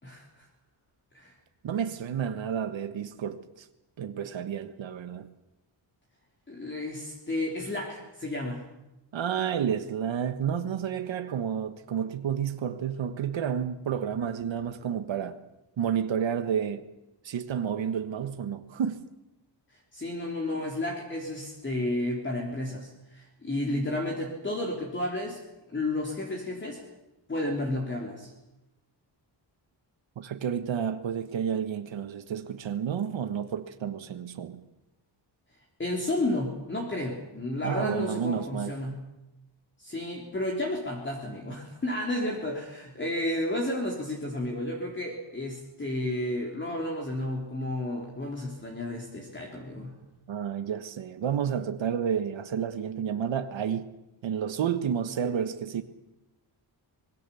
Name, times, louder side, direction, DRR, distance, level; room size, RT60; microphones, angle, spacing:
voice 1, 0.0-0.5 1.1-1.3 6.5-8.6 19.7-25.4 25.7-26.8 27.3-28.3 35.8-39.0 39.8-49.9, left 1 dB, 25° left, 3.5 m, -32 dB
voice 2, 1.6-3.7 4.0-5.3 9.1-15.4 15.8-16.8 17.2-19.0 30.2-34.6 37.6-38.7 50.3-53.9 54.2-55.8, right 8 dB, 75° right, 1.5 m, -30 dB
25.5 x 22.0 x 7.1 m
wide cardioid pair, 170°, 46 cm